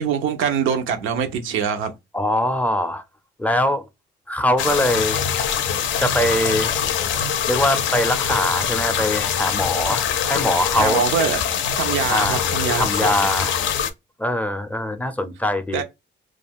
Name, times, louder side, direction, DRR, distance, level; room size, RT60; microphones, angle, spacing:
voice 1, 0.0-1.9 10.7-11.4 11.8-13.3 15.7-15.8, right 7 dB, 90° right, 0.7 m, -23 dB
voice 2, 2.1-3.0 3.4-3.8 4.3-5.2 6.0-6.7 7.5-11.0 12.1-12.5 12.8-13.6 14.2-15.8, left 1 dB, 5° left, 0.5 m, -22 dB
sound 1, 4.6-13.9, left 8 dB, 75° left, 0.5 m, -23 dB
2.4 x 2.2 x 3.4 m
cardioid pair, 90°, 20 cm